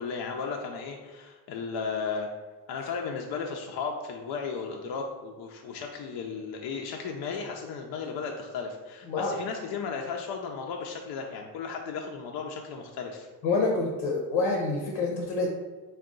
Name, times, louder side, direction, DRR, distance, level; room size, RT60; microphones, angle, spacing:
voice 1, 0.0-2.3 2.7-13.3, left 5 dB, 55° left, 1 dB, 0.5 m, -35 dB
voice 2, 13.4-15.5, left 3 dB, 85° left, 0 dB, 0.7 m, -27 dB
3.5 x 2.3 x 3.7 m, 1.3 s
supercardioid pair, 60°, 45 cm